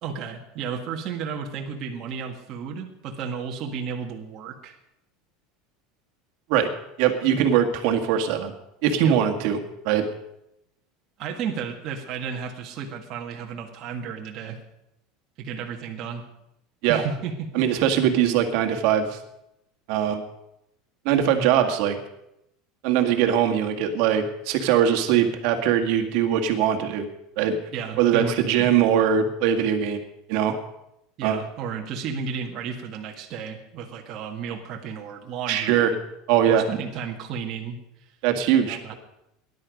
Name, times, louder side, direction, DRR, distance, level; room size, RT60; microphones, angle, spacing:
voice 1, 0.0-4.8 9.0-9.2 11.2-14.6 15.4-16.2 16.9-17.7 27.7-29.0 31.2-36.0 36.4-37.8 38.7-38.9, right 6 dB, 35° right, 1 dB, 1.7 m, -33 dB
voice 2, 6.5-8.5 8.8-9.6 9.8-10.1 16.8-17.0 17.5-19.2 19.9-20.2 21.1-22.0 22.8-27.1 27.4-27.6 28.0-30.0 30.3-30.6 31.2-31.4 35.5-35.9 36.3-36.6 38.2-38.9, right 9 dB, 55° right, 5 dB, 2.0 m, -21 dB
18.5 x 11.5 x 5.3 m, 0.83 s
cardioid pair, 175°, 0 cm